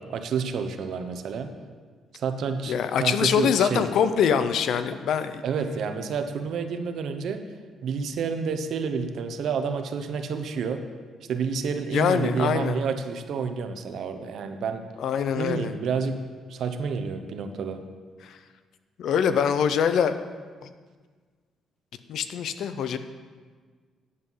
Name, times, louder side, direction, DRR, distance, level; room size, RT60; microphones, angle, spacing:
voice 1, 0.0-1.5 2.1-2.7 3.0-3.8 5.4-7.4 7.8-10.8 11.3-14.8 15.4-16.2 16.5-17.8, right 5 dB, 65° right, 7 dB, 0.9 m, -29 dB
voice 2, 2.7-5.4 11.9-12.8 15.0-15.7 18.2-18.4 19.0-20.2 20.6-20.7 22.1-23.0, left 7 dB, 70° left, 11 dB, 0.6 m, -24 dB
9.8 x 7.8 x 5.6 m, 1.6 s
cardioid pair, 120°, 0 cm